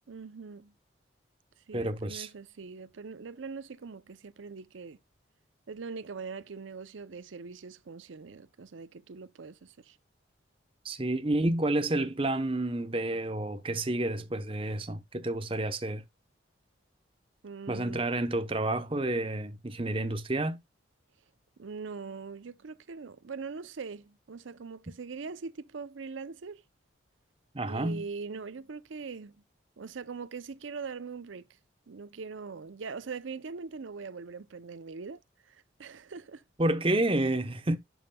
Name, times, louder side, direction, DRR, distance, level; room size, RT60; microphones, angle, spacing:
voice 1, 0.1-0.7 1.7-5.0 5.7-10.0 17.4-18.1 21.6-26.6 27.6-29.4 29.8-31.5 31.9-36.4, right 5 dB, 75° right, 0.6 m, -42 dB
voice 2, 1.7-2.3 10.8-16.0 17.7-20.6 27.5-28.0 36.6-37.8, right 1 dB, 25° right, 0.8 m, -29 dB
11.0 x 5.4 x 2.2 m
head